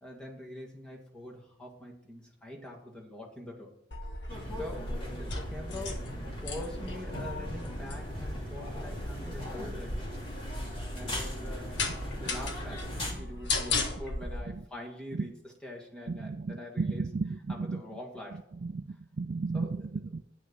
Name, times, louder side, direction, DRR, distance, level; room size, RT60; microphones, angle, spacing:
voice 1, 0.0-3.7 4.6-6.1 6.4-10.1 10.9-11.7 12.1-17.1 17.5-18.4 19.5-19.9, left 1 dB, 5° left, -2 dB, 1.9 m, -44 dB
sound 1, 3.9-14.4, left 2 dB, 65° left, 1.5 m, -37 dB
sound 2, 4.3-13.1, left 1 dB, 30° left, 2.7 m, -39 dB
voice 2, 16.1-17.8 18.6-20.2, right 4 dB, 40° right, 11 dB, 0.3 m, -34 dB
9.5 x 6.3 x 6.2 m, 0.77 s
head